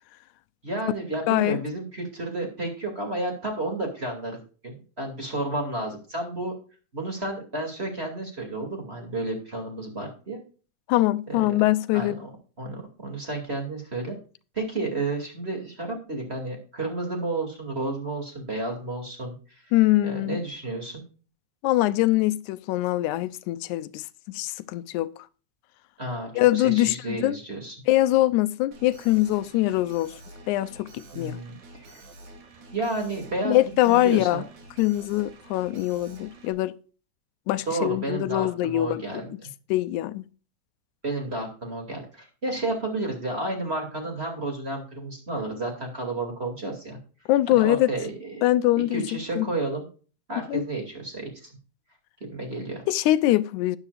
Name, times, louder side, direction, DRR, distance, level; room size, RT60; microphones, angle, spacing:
voice 1, 0.6-6.5 6.9-10.4 11.3-11.7 11.9-12.3 12.6-14.2 14.5-19.3 20.0-21.0 26.0-27.8 31.1-32.0 32.7-33.6 33.8-34.4 37.6-39.3 41.0-47.0 47.5-49.8 50.3-51.5 52.3-52.8, right 2 dB, 20° right, 2.6 m, -31 dB
voice 2, 1.3-1.6 10.9-12.2 19.7-20.4 21.6-25.1 26.4-27.4 27.9-30.1 30.5-31.4 33.5-34.4 34.8-36.8 37.5-39.4 39.7-40.2 47.3-47.9 48.4-49.0 49.4-49.5 50.5-50.6 52.9-53.8, left 16 dB, 90° left, 2.0 m, -23 dB
Alarm, 28.7-36.5, right 2 dB, 75° right, 3.5 m, -48 dB
12.0 x 10.5 x 2.5 m
omnidirectional pair, 3.3 m